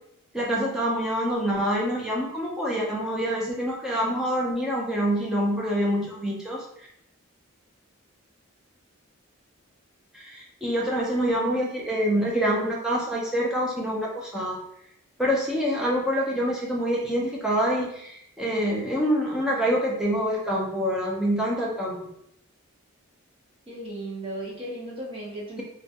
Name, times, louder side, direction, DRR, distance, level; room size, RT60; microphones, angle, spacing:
voice 1, 0.3-6.6 10.1-14.6 15.2-22.0, equal, 5° right, -4 dB, 0.5 m, -26 dB
voice 2, 23.7-25.6, right 1 dB, 25° right, -5 dB, 0.8 m, -35 dB
3.0 x 2.2 x 2.8 m, 0.74 s
head